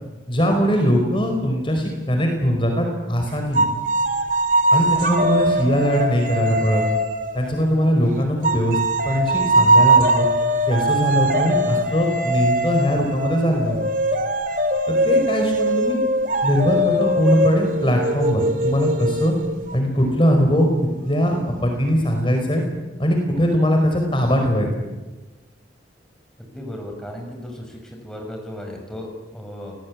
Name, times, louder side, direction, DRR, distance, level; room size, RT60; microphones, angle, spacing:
voice 1, 0.3-3.7 4.7-6.8 7.3-8.8 9.0-10.3 10.7-13.8 14.9-16.0 16.4-19.3 19.7-20.7 21.0-22.6 23.0-24.7, equal, 25° left, 3 dB, 4.9 m, -21 dB
sound 1, 3.5-7.9 8.4-19.8, right 1 dB, 45° right, 2.7 m, -21 dB
voice 2, 26.4-29.8, left 1 dB, 5° left, 1 dB, 6.0 m, -35 dB
28.5 x 20.5 x 9.8 m, 1.2 s
head